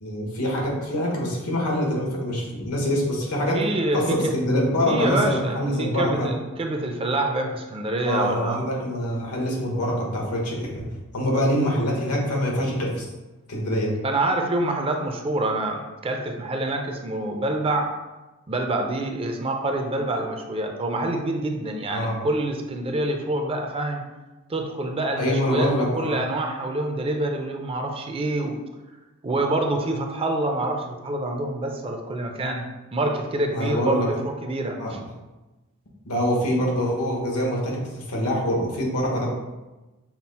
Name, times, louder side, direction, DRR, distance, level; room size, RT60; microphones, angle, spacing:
voice 1, 0.0-3.6 3.9-6.3 8.0-10.9 11.1-13.0 13.5-13.9 21.9-22.2 25.1-26.2 33.5-34.1 34.8-34.9 36.0-39.3, equal, 85° left, -2 dB, 1.2 m, -25 dB
voice 2, 3.5-4.4 4.9-8.6 14.0-17.9 18.5-24.0 24.5-28.6 29.2-32.6 32.9-35.0, right 2 dB, 25° right, 3 dB, 0.4 m, -26 dB
5.8 x 2.0 x 4.1 m, 1.1 s
head